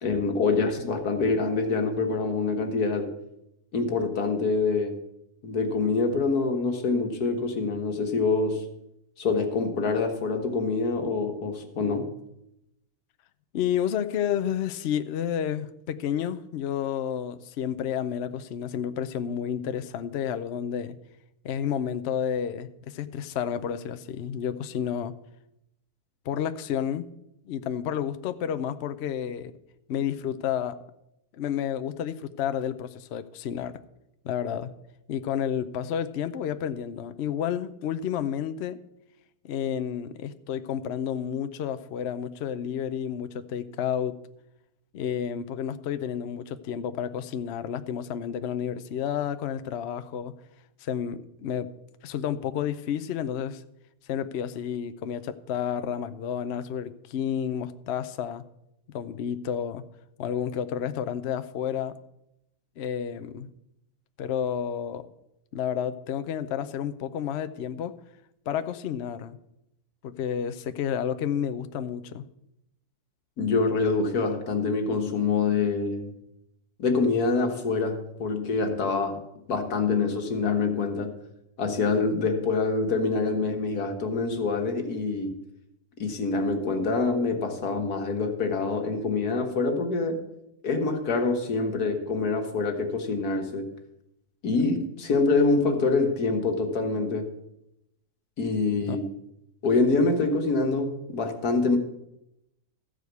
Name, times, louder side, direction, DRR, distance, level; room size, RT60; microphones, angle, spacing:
voice 1, 0.0-3.1 3.7-5.0 5.4-8.6 9.2-12.1 73.4-76.1 76.8-79.2 79.5-81.1 81.6-85.4 86.0-90.2 90.6-93.7 94.4-97.3 98.4-99.1 99.6-101.8, left 3 dB, 90° left, 4 dB, 1.9 m, -25 dB
voice 2, 13.5-20.9 21.4-25.1 26.3-27.1 27.5-29.5 29.9-30.8 31.4-33.7 34.2-34.7 35.1-38.8 39.4-44.2 44.9-50.3 50.8-51.7 52.0-53.6 54.1-58.4 58.9-59.8 60.2-61.9 62.8-63.5 64.2-65.1 65.5-68.0 68.5-69.4 70.0-72.2 98.9-99.0, left 9 dB, 60° left, 11 dB, 0.7 m, -30 dB
14.0 x 5.0 x 8.1 m, 0.84 s
omnidirectional pair, 1.6 m